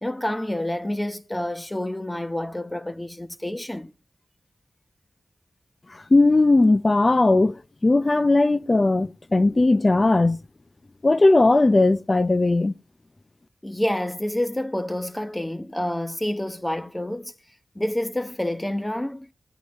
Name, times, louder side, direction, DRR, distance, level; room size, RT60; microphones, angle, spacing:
voice 1, 0.0-3.9 13.6-17.3 17.7-19.3, left 1 dB, 15° left, 0.9 m, -28 dB
voice 2, 6.1-7.5 7.8-10.4 11.0-12.7, left 2 dB, 40° left, 0.6 m, -18 dB
18.0 x 9.8 x 3.2 m
cardioid pair, 55°, 0 cm